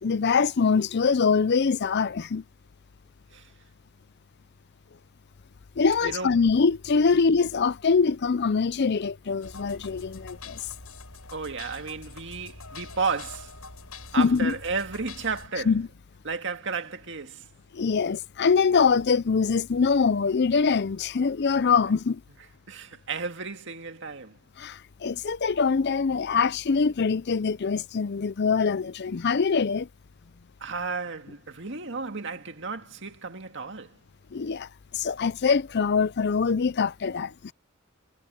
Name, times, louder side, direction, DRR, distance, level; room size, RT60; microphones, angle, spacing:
voice 1, 0.0-2.4 5.8-10.6 14.2-14.5 15.7-15.9 17.7-22.2 24.6-29.9 34.3-34.7 34.9-37.5, left 5 dB, 50° left, 0.5 m, -23 dB
voice 2, 6.0-6.3 11.3-13.6 14.1-15.7 16.2-17.5 22.7-24.4 30.6-34.0, right 4 dB, 55° right, 2.1 m, -33 dB
sound 1, 9.4-15.5, left 3 dB, 90° left, 5.6 m, -44 dB
head